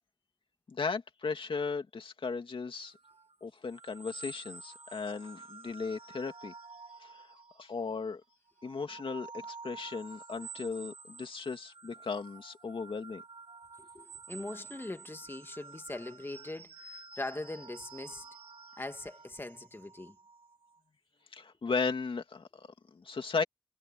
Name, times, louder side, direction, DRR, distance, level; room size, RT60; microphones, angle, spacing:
voice 1, 0.7-3.0 3.4-6.5 7.0-7.3 7.6-8.2 8.6-13.2 21.3-23.4, left 4 dB, 75° left, 2.5 m, -36 dB
sound 1, 2.8-8.1 8.5-20.8, right 4 dB, 85° right, 2.4 m, -50 dB
voice 2, 13.8-18.3 18.8-20.2, left 2 dB, 25° left, 1.9 m, -41 dB
wide cardioid pair, 110°, 9 cm